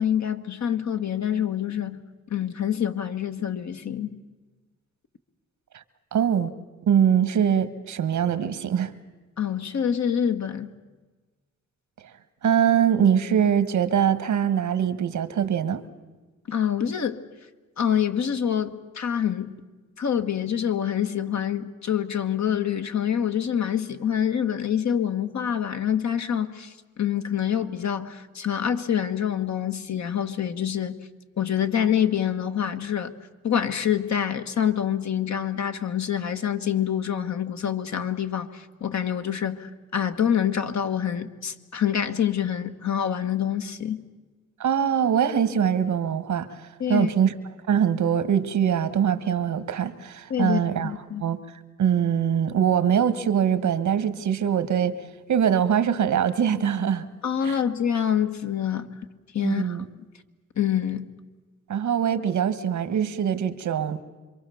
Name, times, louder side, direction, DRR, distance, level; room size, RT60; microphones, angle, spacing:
voice 1, 0.0-2.0 2.3-4.1 9.4-10.7 16.5-17.2 17.8-19.5 20.0-31.0 31.4-33.1 33.4-44.0 46.8-47.1 50.3-51.2 57.2-59.0 59.3-59.8 60.6-61.1, left 9 dB, 70° left, 1.6 m, -26 dB
voice 2, 6.1-6.5 6.9-8.9 12.4-15.8 44.6-47.3 47.7-50.9 51.2-51.4 51.8-54.9 55.3-57.1 57.4-57.6 59.4-59.8 61.7-64.0, right 8 dB, 85° right, 1.4 m, -23 dB
26.5 x 23.5 x 7.0 m
cardioid pair, 65°, 29 cm